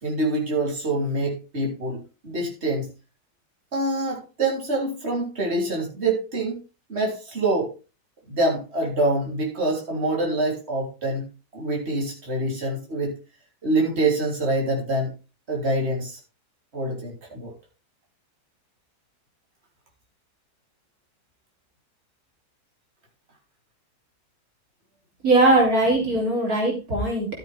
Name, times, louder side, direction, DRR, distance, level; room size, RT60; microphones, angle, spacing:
voice 1, 0.0-2.9 3.7-6.6 6.9-7.7 8.3-11.3 11.5-13.1 13.6-15.1 15.5-16.2 16.7-17.5, right 2 dB, 40° right, -2 dB, 3.8 m, -25 dB
voice 2, 25.2-27.3, right 2 dB, 65° right, -1 dB, 4.0 m, -20 dB
13.5 x 7.7 x 3.5 m, 0.30 s
omnidirectional pair, 1.7 m